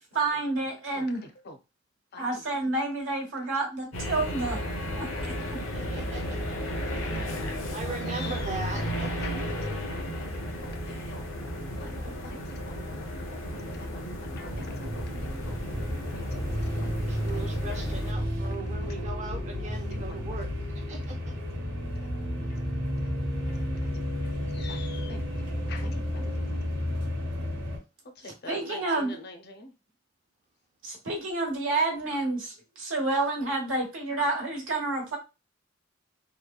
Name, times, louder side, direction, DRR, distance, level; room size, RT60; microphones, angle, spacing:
voice 1, 0.1-1.2 2.2-4.6 5.0-5.6 28.4-29.2 30.8-35.2, right 2 dB, 85° right, 1.1 m, -29 dB
voice 2, 0.9-1.6 2.1-2.2 5.1-5.5 6.3-6.4 6.9-7.3 8.1-8.5 9.2-9.4 9.7-11.2 11.8-12.8 13.5-15.6 16.1-16.9 17.2-18.3 18.8-19.1 19.9-20.4 22.0-22.2 22.5-22.6 22.9-26.3 26.5-26.7 28.2-29.7, left 2 dB, 55° left, 0.5 m, -46 dB
sound 1, 3.9-18.1, equal, 85° left, 0.7 m, -34 dB
voice 3, 5.6-6.6 7.7-9.3 16.9-21.4, right 3 dB, 35° right, 0.6 m, -39 dB
sound 2, 14.5-27.8, equal, 60° right, 0.9 m, -32 dB
3.0 x 2.1 x 2.3 m
head